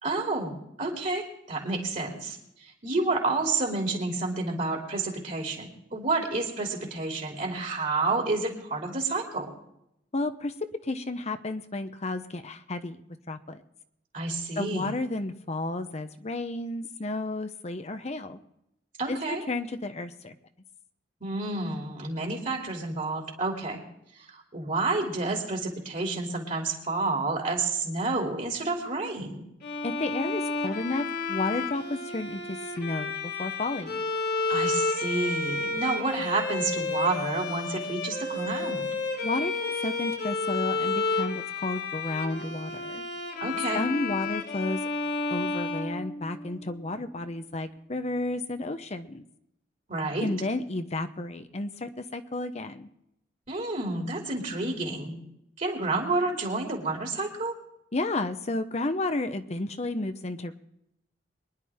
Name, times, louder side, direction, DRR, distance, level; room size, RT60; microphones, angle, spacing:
voice 1, 0.0-9.5 14.1-14.9 19.0-19.4 21.2-23.8 24.2-29.4 34.5-38.9 43.4-43.8 49.9-50.3 53.5-55.2 55.6-57.5, right 3 dB, 45° right, 1 dB, 2.8 m, -30 dB
voice 2, 10.1-13.0 13.3-13.6 14.6-18.4 19.1-20.3 29.8-34.0 39.2-43.1 43.7-44.8 45.3-49.2 50.2-52.9 57.9-60.6, left 2 dB, 40° left, 9 dB, 0.8 m, -32 dB
Bowed string instrument, 29.6-46.6, left 3 dB, 60° left, 2.3 m, -31 dB
23.5 x 10.5 x 3.6 m, 0.79 s
head